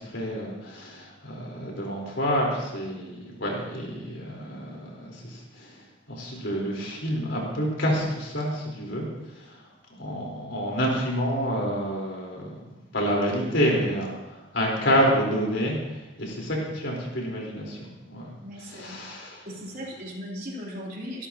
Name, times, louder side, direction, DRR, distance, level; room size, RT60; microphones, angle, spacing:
voice 1, 0.0-5.8 6.1-9.1 9.3-9.6 10.0-15.8 16.2-17.8 18.1-18.3 18.6-19.4, equal, 75° left, -2 dB, 4.3 m, -28 dB
voice 2, 18.4-19.0 19.5-21.3, equal, 50° right, -3 dB, 3.6 m, -37 dB
22.5 x 12.5 x 3.0 m, 1.0 s
head